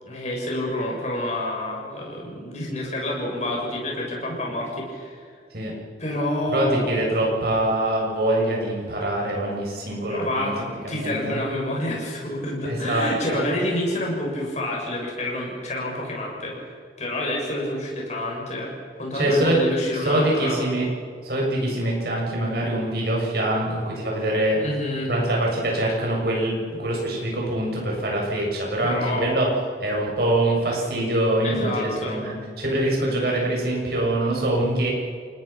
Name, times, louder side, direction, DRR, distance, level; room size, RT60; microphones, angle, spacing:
voice 1, 0.0-5.3 6.0-7.0 10.1-16.5 17.0-20.6 24.6-25.1 28.8-29.5 31.4-32.2, left 1 dB, 40° left, -2 dB, 7.3 m, -28 dB
voice 2, 6.5-10.5 10.9-11.4 12.6-13.4 19.1-19.6 20.0-20.9 21.2-24.6 25.1-29.5 29.8-34.9, right 1 dB, 55° right, -2 dB, 7.5 m, -24 dB
28.5 x 20.0 x 6.0 m, 2.2 s
head